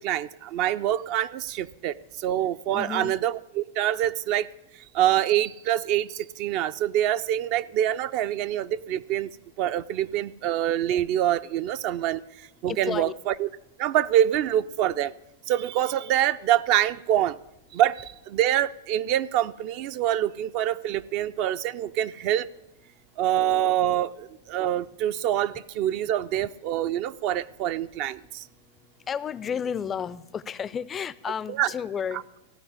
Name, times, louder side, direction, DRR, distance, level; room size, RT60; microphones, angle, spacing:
voice 1, 0.0-4.5 4.9-9.3 9.6-13.5 13.8-15.1 15.5-17.4 17.7-22.5 23.2-28.5 31.5-31.7, right 12 dB, 45° right, 14 dB, 0.4 m, -25 dB
voice 2, 2.7-3.2 12.7-13.1 29.0-32.3, left 7 dB, 20° left, 18 dB, 0.3 m, -32 dB
15.0 x 5.0 x 9.5 m, 0.89 s
hypercardioid pair, 125°, 0 cm